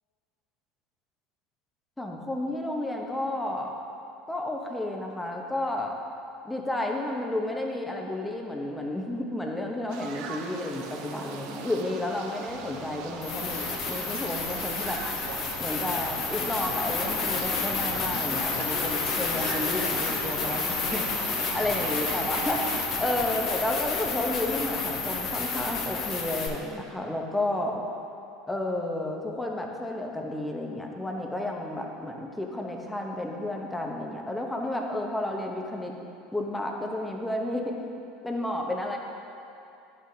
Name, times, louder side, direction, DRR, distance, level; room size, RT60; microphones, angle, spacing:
voice 1, 2.0-3.8 4.3-6.0 6.4-15.0 15.6-21.0 21.5-22.6 23.0-27.8 28.5-35.9 36.3-37.8 38.2-39.0, left 1 dB, 10° left, 1 dB, 1.0 m, -31 dB
sound 1, 9.9-22.9, right 5 dB, 65° right, 0.6 m, -40 dB
sound 2, 12.5-12.6 13.2-26.5, left 4 dB, 50° left, 1.2 m, -30 dB
10.5 x 6.6 x 2.8 m, 2.7 s
hypercardioid pair, 80°, 0 cm